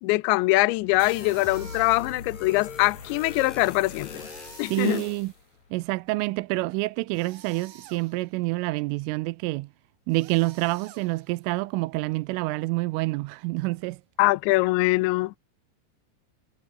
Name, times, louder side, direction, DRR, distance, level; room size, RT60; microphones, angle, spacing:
voice 1, 0.0-4.2 4.6-5.0 14.2-15.3, left 22 dB, 85° left, 2.7 m, -23 dB
sound 1, 0.7-6.1, left 5 dB, 40° left, 5.3 m, -44 dB
sound 2, 1.0-5.4, left 7 dB, 55° left, 6.0 m, -43 dB
sound 3, 1.2-2.3 4.1-5.6 7.1-8.4 10.1-11.5, right 10 dB, 55° right, 3.0 m, -50 dB
voice 2, 4.7-5.3 5.7-9.7 10.1-14.0, right 22 dB, 85° right, 3.2 m, -27 dB
omnidirectional pair, 5.7 m